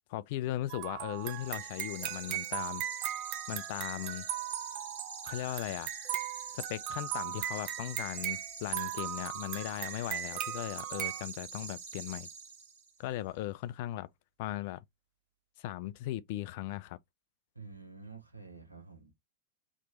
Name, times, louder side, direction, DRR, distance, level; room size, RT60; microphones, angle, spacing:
voice 1, 0.1-2.8 3.5-4.3 5.2-5.9 6.5-12.3 13.0-14.1 14.4-14.8 15.6-17.0, left 15 dB, 50° left, 0.3 m, -38 dB
sound 1, 0.7-11.2, right 12 dB, 40° right, 0.5 m, -38 dB
sound 2, 1.1-13.0, right 5 dB, 60° right, 1.3 m, -45 dB
voice 2, 17.5-19.1, right 4 dB, 85° right, 0.9 m, -49 dB
3.0 x 2.5 x 4.0 m
figure-of-eight pair, 90°, 0 cm